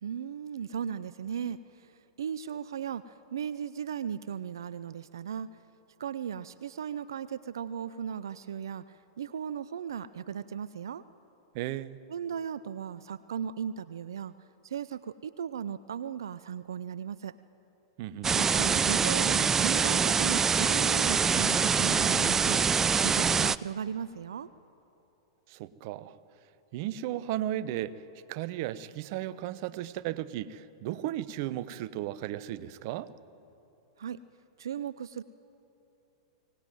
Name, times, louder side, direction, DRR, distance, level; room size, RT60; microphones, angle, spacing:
voice 1, 0.0-5.6 6.0-11.0 12.1-14.3 14.6-17.4 18.3-22.8 23.0-24.5 34.0-34.2 34.6-35.2, right 8 dB, 70° right, 16 dB, 0.5 m, -37 dB
voice 2, 11.5-12.0 18.0-18.4 25.5-26.2 26.7-28.0 28.3-33.1, right 13 dB, 50° right, 15 dB, 0.9 m, -35 dB
sound 1, 18.2-23.6, right 6 dB, 20° right, 0.4 m, -25 dB
23.0 x 18.5 x 9.2 m, 2.9 s
hypercardioid pair, 100°, 2 cm